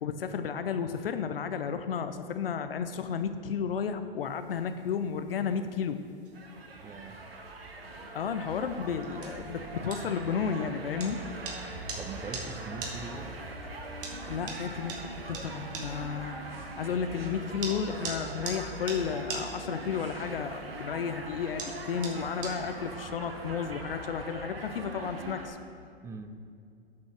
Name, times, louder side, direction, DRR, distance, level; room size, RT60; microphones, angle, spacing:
voice 1, 0.0-6.0 8.1-11.2 14.3-14.9 15.3-25.6, left 7 dB, 75° left, 9 dB, 0.6 m, -33 dB
sound 1, 4.2-22.9, right 4 dB, 65° right, 2.3 m, -45 dB
sound 2, 6.3-25.5, right 2 dB, 80° right, 1.5 m, -41 dB
voice 2, 6.8-7.2 12.0-13.4 26.0-26.4, right 4 dB, 10° right, 9 dB, 0.3 m, -41 dB
8.4 x 6.3 x 6.4 m, 2.3 s
figure-of-eight pair, 105°, 29 cm